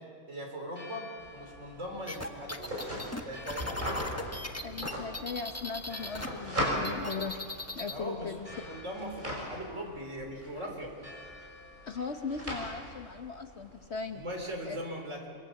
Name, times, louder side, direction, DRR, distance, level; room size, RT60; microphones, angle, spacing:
voice 1, 0.3-2.8 3.2-4.0 7.9-10.9 14.1-15.3, equal, 55° right, 2 dB, 4.4 m, -40 dB
Church bell, 0.6-14.7, left 2 dB, 30° left, 6.3 m, -54 dB
sound 1, 1.2-14.6, equal, 30° right, 6.8 m, -40 dB
sound 2, 2.1-6.3 6.6-8.0, left 2 dB, 10° left, 1.2 m, -38 dB
voice 2, 4.6-7.4 7.7-8.5 11.8-14.2 14.7-14.8, left 5 dB, 50° left, 6 dB, 1.2 m, -38 dB
25.5 x 24.0 x 7.3 m, 2.3 s
omnidirectional pair, 1.6 m